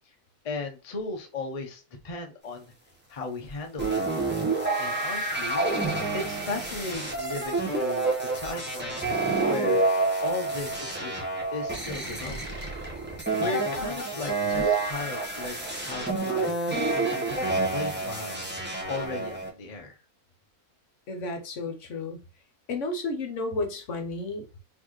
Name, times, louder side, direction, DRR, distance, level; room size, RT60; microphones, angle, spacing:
voice 1, 0.4-2.7 3.1-4.1 4.8-5.7 6.1-9.0 9.4-9.9 10.2-11.2 11.5-12.6 13.4-18.4 18.9-20.0, left 3 dB, 35° left, 0.6 m, -36 dB
sound 1, 3.8-19.5, right 3 dB, 10° right, 1.0 m, -28 dB
voice 2, 21.1-22.2 22.7-24.6, left 2 dB, 60° left, 1.2 m, -32 dB
4.2 x 3.4 x 3.0 m
omnidirectional pair, 1.6 m